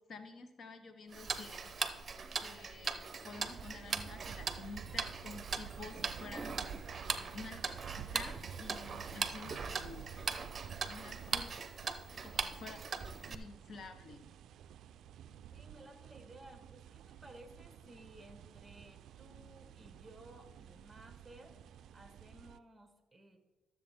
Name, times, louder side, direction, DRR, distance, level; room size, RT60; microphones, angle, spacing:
voice 1, 0.0-1.7 2.4-6.6 7.0-10.3 10.9-11.5 12.1-12.8 13.3-14.2, left 4 dB, 50° left, 8 dB, 0.9 m, -50 dB
Tick-tock, 1.1-13.3, right 5 dB, 40° right, 0.8 m, -40 dB
sound 1, 3.3-22.6, right 9 dB, 75° right, 0.3 m, -52 dB
voice 2, 15.5-21.6 21.9-23.4, right 1 dB, 10° right, 6 dB, 1.5 m, -57 dB
12.5 x 7.4 x 3.6 m, 1.2 s
cardioid pair, 90°, 0 cm